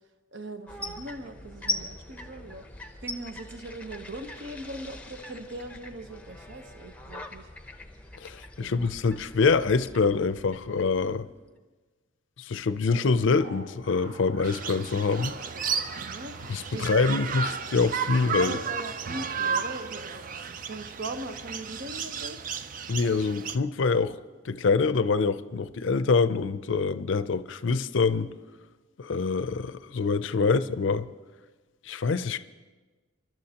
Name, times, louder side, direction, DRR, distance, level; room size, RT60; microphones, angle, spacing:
voice 1, 0.3-2.7 3.0-7.5 8.6-8.8 16.0-16.4 16.7-17.2 18.3-22.4 30.4-30.5, right 2 dB, 65° right, 1.0 m, -40 dB
sound 1, 0.7-11.5, left 2 dB, 5° left, 0.7 m, -41 dB
voice 2, 8.2-11.3 12.4-15.4 16.5-18.6 22.9-24.2 24.4-28.3 29.0-31.1 31.9-32.4, left 4 dB, 70° left, 0.5 m, -25 dB
sound 2, 12.8-19.8, right 1 dB, 80° right, 5.5 m, -46 dB
sound 3, 14.4-23.6, right 6 dB, 40° right, 0.4 m, -33 dB
27.5 x 12.0 x 2.9 m
head